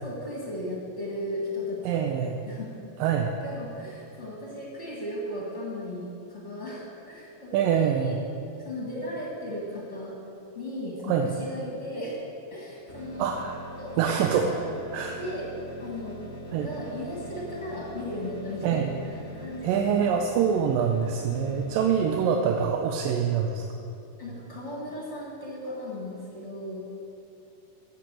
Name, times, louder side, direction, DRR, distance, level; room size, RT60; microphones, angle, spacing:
voice 1, 0.0-2.1 2.5-2.7 3.0-3.1 3.4-8.2 8.6-10.2 10.5-12.2 12.5-13.3 13.8-14.7 15.2-15.5 15.8-16.2 16.6-20.1 24.2-26.9, left 1 dB, 30° left, -4 dB, 1.4 m, -36 dB
voice 2, 1.8-2.4 3.0-3.3 7.5-8.2 11.1-11.3 13.2-13.6 14.0-14.5 14.9-15.2 16.5-16.7 18.6-18.9 19.6-23.6, right 7 dB, 85° right, 3 dB, 2.4 m, -25 dB
sound 1, 12.9-22.2, right 1 dB, 20° right, 1.5 m, -42 dB
15.0 x 6.1 x 7.6 m, 2.7 s
omnidirectional pair, 3.9 m